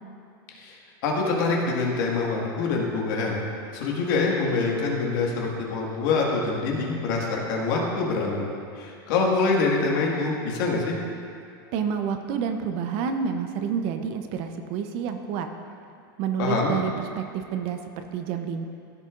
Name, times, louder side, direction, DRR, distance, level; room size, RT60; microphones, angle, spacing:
voice 1, 1.0-3.4 3.7-8.5 8.8-11.0 16.4-16.7, left 3 dB, 60° left, -1 dB, 1.7 m, -25 dB
voice 2, 11.7-15.5 16.2-18.7, right 7 dB, 45° right, 7 dB, 0.6 m, -29 dB
14.5 x 6.6 x 2.5 m, 2.4 s
supercardioid pair, 140°, 13 cm